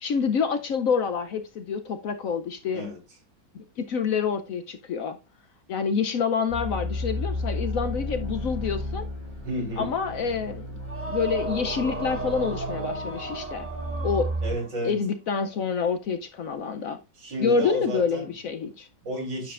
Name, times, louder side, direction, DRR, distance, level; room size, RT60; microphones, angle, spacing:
voice 1, 0.0-2.9 3.5-5.2 5.7-9.1 9.8-10.8 11.1-13.7 14.0-14.3 14.8-17.0 17.4-18.9, left 6 dB, 65° left, 0.9 m, -27 dB
sound 1, 6.5-14.5, equal, 40° left, 5.2 m, -33 dB
voice 2, 9.4-9.9 14.4-15.0 17.2-18.3 19.0-19.5, equal, 75° right, 4.0 m, -32 dB
sound 2, 10.8-14.8, right 2 dB, 10° right, 0.8 m, -34 dB
9.9 x 7.2 x 2.4 m
omnidirectional pair, 1.9 m